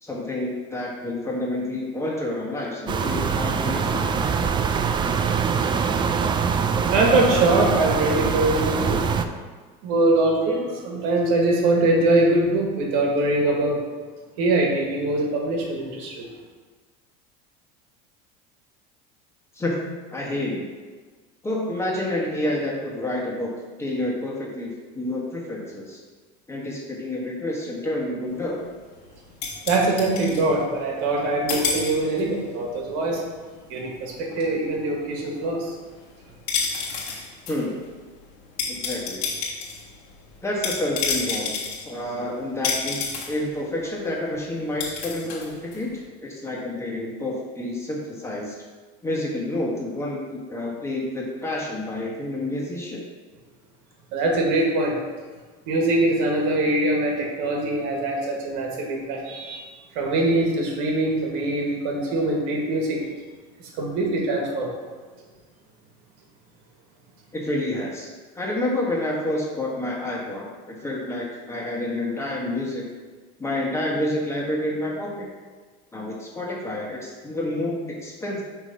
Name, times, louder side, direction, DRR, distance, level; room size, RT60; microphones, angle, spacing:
voice 1, 0.0-4.2 19.5-20.7 21.4-23.5 23.8-26.0 26.5-28.6 37.5-37.8 38.7-39.3 40.4-48.6 49.0-53.0 67.3-72.9 73.4-75.3 75.9-78.4, left 1 dB, 15° left, -3 dB, 1.4 m, -29 dB
sound 1, 2.9-9.2, right 6 dB, 25° right, 0.3 m, -23 dB
voice 2, 6.9-9.0 9.8-13.8 14.4-16.3 29.7-33.2 33.7-35.7 54.1-54.9 55.7-63.0 63.8-64.7, right 2 dB, 70° right, -1 dB, 1.5 m, -23 dB
sound 2, 28.3-31.2 31.5-32.4 32.7-46.1, left 5 dB, 85° left, 1.5 m, -31 dB
6.3 x 3.1 x 5.1 m, 1.4 s
supercardioid pair, 115°, 21 cm